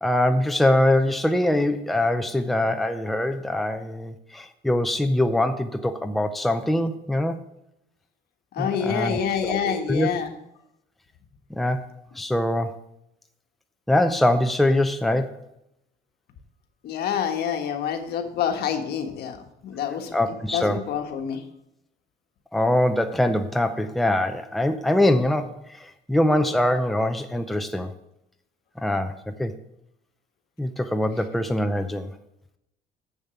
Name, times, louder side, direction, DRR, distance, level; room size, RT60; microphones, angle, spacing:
voice 1, 0.0-7.4 8.6-10.1 11.5-11.8 12.2-12.8 13.9-15.4 20.1-20.8 22.5-27.9 28.8-29.5 30.6-32.1, left 1 dB, ahead, 7 dB, 0.6 m, -23 dB
voice 2, 8.5-10.3 16.8-19.4 19.6-21.4, left 8 dB, 70° left, 5 dB, 1.5 m, -27 dB
7.4 x 7.1 x 7.0 m, 0.82 s
cardioid pair, 110°, 17 cm